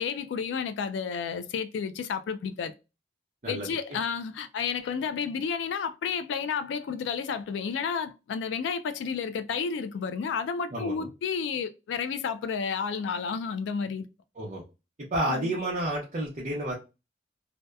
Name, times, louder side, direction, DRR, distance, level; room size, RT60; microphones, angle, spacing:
voice 1, 0.0-2.7 3.4-14.1 15.3-15.5, left 6 dB, 90° left, 0.3 m, -31 dB
voice 2, 3.4-3.8 10.7-11.1 14.4-14.6 15.1-16.7, right 1 dB, 40° right, 0.6 m, -30 dB
2.7 x 2.1 x 2.2 m
head